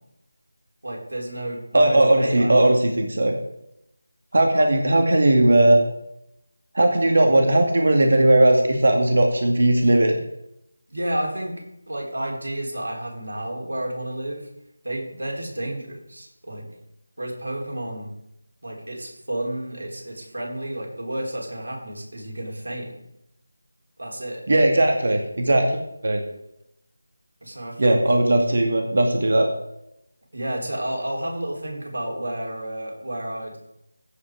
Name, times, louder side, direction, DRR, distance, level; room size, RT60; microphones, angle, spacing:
voice 1, 0.8-2.5 10.9-14.5 14.8-16.7 17.2-18.1 18.6-22.9 24.0-24.4 27.4-28.0 30.3-33.6, right 1 dB, 75° right, -1 dB, 4.2 m, -31 dB
voice 2, 1.7-3.3 4.3-5.8 6.7-10.2 24.5-26.2 27.8-29.5, right 1 dB, 60° right, 3 dB, 2.1 m, -18 dB
15.5 x 5.7 x 5.1 m, 0.82 s
figure-of-eight pair, 170°, 0 cm